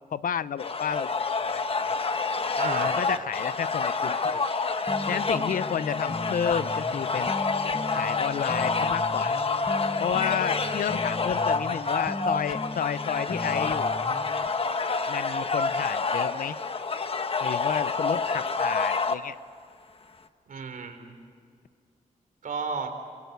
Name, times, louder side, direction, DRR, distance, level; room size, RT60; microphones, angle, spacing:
voice 1, 0.1-1.9 2.6-4.4 5.1-7.3 7.9-9.3 10.0-13.9 15.1-16.6 17.4-19.3, left 8 dB, 90° left, 16 dB, 0.7 m, -31 dB
sound 1, 0.6-19.1, left 4 dB, 45° left, 1.3 m, -28 dB
voice 2, 2.6-3.0 10.3-10.8 20.5-21.2 22.4-22.9, right 5 dB, 80° right, 6 dB, 3.7 m, -34 dB
sound 2, 4.9-14.5, left 1 dB, 15° left, 1.2 m, -37 dB
28.0 x 25.0 x 8.1 m, 2.2 s
wide cardioid pair, 120°, 14 cm